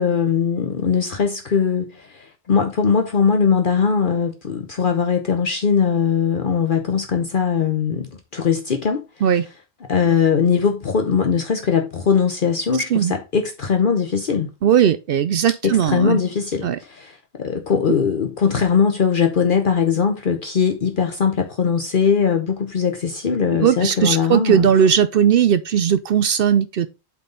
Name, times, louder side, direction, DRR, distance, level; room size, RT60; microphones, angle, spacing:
voice 1, 0.0-9.0 9.9-14.5 15.6-24.7, left 6 dB, 55° left, 1.0 m, -20 dB
voice 2, 14.6-16.2 16.6-16.8 23.6-26.9, right 8 dB, 65° right, 0.7 m, -17 dB
8.5 x 3.9 x 3.9 m
omnidirectional pair, 1.1 m